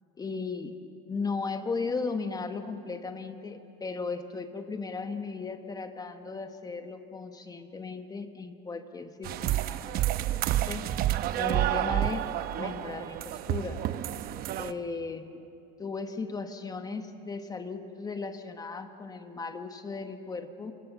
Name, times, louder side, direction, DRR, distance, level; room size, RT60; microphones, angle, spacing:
voice 1, 0.2-0.8 1.1-10.4 10.7-10.8 11.4-12.3 12.6-13.8 14.6-15.4 15.8-20.7, left 4 dB, 20° left, 7 dB, 1.2 m, -36 dB
sound 1, 9.2-14.7, right 13 dB, 50° right, 0.9 m, -29 dB
27.5 x 23.0 x 7.3 m, 2.8 s
supercardioid pair, 125°, 20 cm